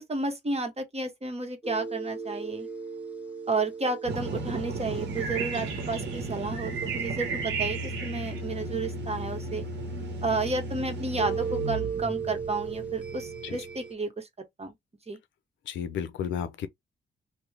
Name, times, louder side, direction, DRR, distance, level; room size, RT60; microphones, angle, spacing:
voice 1, 0.0-2.7 3.5-9.6 10.2-14.3 14.6-14.7 15.1-15.2, right 3 dB, 35° right, 1.2 m, -32 dB
sound 1, 1.6-13.9, right 5 dB, 10° right, 0.9 m, -38 dB
sound 2, 4.0-13.8, right 2 dB, 65° right, 1.0 m, -36 dB
sound 3, 5.1-8.4, right 6 dB, 90° right, 0.8 m, -35 dB
voice 2, 15.7-16.7, left 8 dB, 80° left, 0.5 m, -32 dB
3.0 x 2.2 x 3.4 m
supercardioid pair, 50°, 19 cm